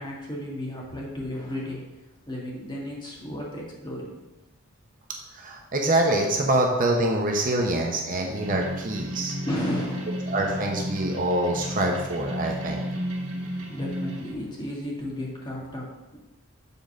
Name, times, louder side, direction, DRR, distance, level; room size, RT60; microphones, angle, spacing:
voice 1, 0.0-1.9 2.3-4.2 9.5-10.4 13.7-16.2, left 1 dB, 20° left, -3 dB, 1.8 m, -34 dB
voice 2, 5.3-9.3 10.3-12.8, right 1 dB, 40° right, 1 dB, 0.9 m, -25 dB
sound 1, 8.3-14.3, equal, 75° right, 2.0 m, -32 dB
6.9 x 4.0 x 6.3 m, 0.99 s
head